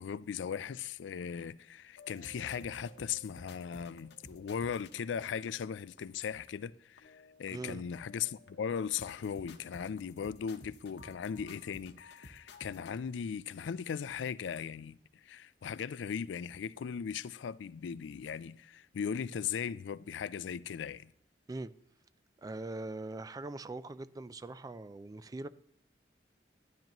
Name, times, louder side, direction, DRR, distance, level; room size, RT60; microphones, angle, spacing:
voice 1, 0.0-15.0 15.2-21.1, left 7 dB, 90° left, 0.4 m, -38 dB
sound 1, 2.0-6.0 6.5-6.6 7.0-7.7 8.0-13.0, left 2 dB, 65° left, 0.9 m, -55 dB
voice 2, 7.5-7.8 21.5-21.7 22.4-25.5, right 2 dB, 20° right, 0.3 m, -42 dB
12.0 x 10.5 x 3.0 m
head